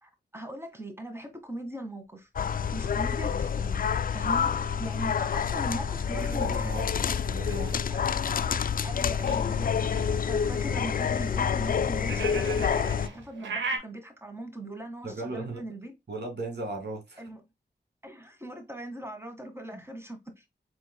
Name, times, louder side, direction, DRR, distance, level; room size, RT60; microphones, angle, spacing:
voice 1, 0.0-2.3 2.7-3.8 4.1-6.7 7.9-8.4 8.8-15.9 17.2-17.4 18.0-20.4, right 1 dB, 15° right, 1.8 m, -40 dB
sound 1, 2.1-2.2 2.9-13.6, left 2 dB, 5° left, 1.6 m, -55 dB
sound 2, 2.4-13.1, left 7 dB, 50° left, 0.4 m, -28 dB
voice 2, 6.1-7.7 15.0-15.6 16.1-17.2 19.7-19.8, right 2 dB, 65° right, 2.3 m, -36 dB
sound 3, 6.6-13.8, right 4 dB, 85° right, 1.1 m, -39 dB
4.6 x 3.8 x 2.2 m
cardioid pair, 40°, 19 cm